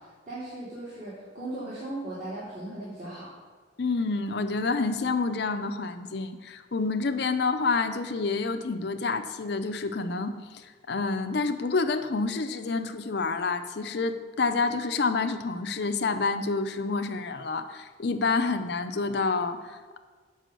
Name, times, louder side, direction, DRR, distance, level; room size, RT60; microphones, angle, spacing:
voice 1, 0.0-3.3, right 1 dB, 45° right, -11 dB, 2.6 m, -38 dB
voice 2, 3.8-20.0, left 4 dB, 60° left, 8 dB, 0.6 m, -28 dB
7.7 x 5.5 x 6.6 m, 1.5 s
head